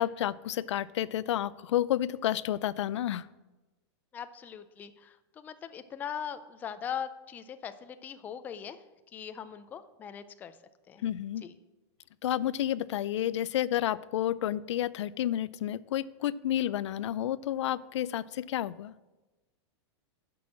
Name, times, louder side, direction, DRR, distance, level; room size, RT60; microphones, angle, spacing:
voice 1, 0.0-3.3 11.0-11.4 12.2-18.9, left 12 dB, 90° left, 18 dB, 0.4 m, -30 dB
voice 2, 4.1-8.8 9.1-10.6 10.9-11.0 11.4-11.5, left 8 dB, 10° left, 11 dB, 0.3 m, -40 dB
10.5 x 6.1 x 6.1 m, 1.1 s
supercardioid pair, 160°, 15 cm